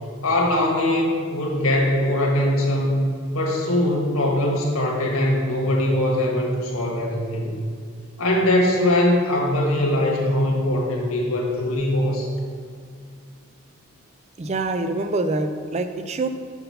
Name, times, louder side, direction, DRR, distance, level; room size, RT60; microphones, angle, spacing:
voice 1, 0.2-3.0 3.3-7.5 8.2-12.3, left 1 dB, 75° left, -1 dB, 1.4 m, -21 dB
voice 2, 14.4-16.3, right 2 dB, 30° right, 9 dB, 0.3 m, -25 dB
6.0 x 5.5 x 5.5 m, 2.1 s
head